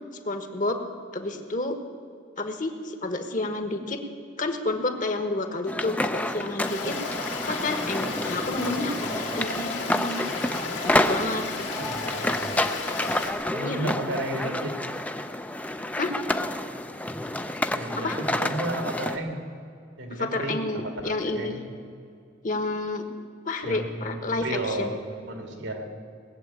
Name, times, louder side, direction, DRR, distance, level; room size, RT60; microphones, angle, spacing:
voice 1, 0.2-0.8 1.1-1.8 2.4-4.0 4.4-7.0 7.4-10.2 10.8-11.5 13.6-14.0 16.0-16.1 18.0-18.2 20.1-21.6 22.4-23.1 23.4-25.0, left 2 dB, 40° left, 7 dB, 1.2 m, -30 dB
sound 1, 5.7-19.2, left 1 dB, 10° left, 0.5 m, -29 dB
Stream, 6.6-13.3, left 4 dB, 75° left, 2.1 m, -34 dB
voice 2, 8.7-9.4 11.7-12.6 13.5-14.7 17.8-19.4 20.0-21.7 23.6-25.9, right 1 dB, 85° right, 4 dB, 2.3 m, -33 dB
19.0 x 7.7 x 8.9 m, 2.5 s
head